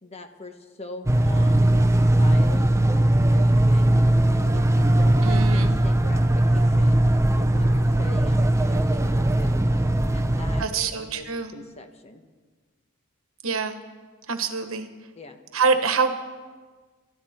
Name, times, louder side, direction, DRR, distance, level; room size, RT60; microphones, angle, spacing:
voice 1, 0.0-4.1 4.5-7.0 7.3-9.8 10.1-11.3 11.5-12.2 15.2-15.4, left 2 dB, 30° left, 6 dB, 1.1 m, -42 dB
sound 1, 1.1-10.6, right 1 dB, 15° right, 0.6 m, -19 dB
voice 2, 5.2-5.8 10.6-11.5 13.4-13.8 14.3-14.9 15.5-16.1, right 5 dB, 75° right, 8 dB, 1.3 m, -25 dB
23.5 x 13.5 x 4.4 m, 1.4 s
head